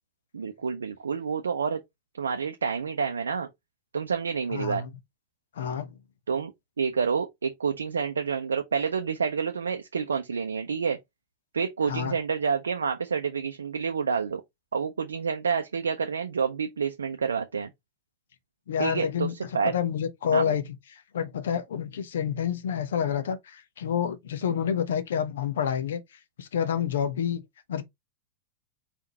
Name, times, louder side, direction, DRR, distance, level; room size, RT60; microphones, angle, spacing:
voice 1, 0.3-1.8 2.2-3.5 3.9-4.8 6.3-6.5 6.8-11.0 11.5-14.4 14.7-17.7 18.8-19.7 20.3-20.5, right 6 dB, 70° right, 0.5 m, -28 dB
voice 2, 4.5-4.9 5.6-5.9 11.8-12.1 18.7-19.3 19.6-26.0 26.4-27.4 27.7-27.8, left 8 dB, 60° left, 0.8 m, -28 dB
4.4 x 3.7 x 2.8 m
figure-of-eight pair, 90°, 0 cm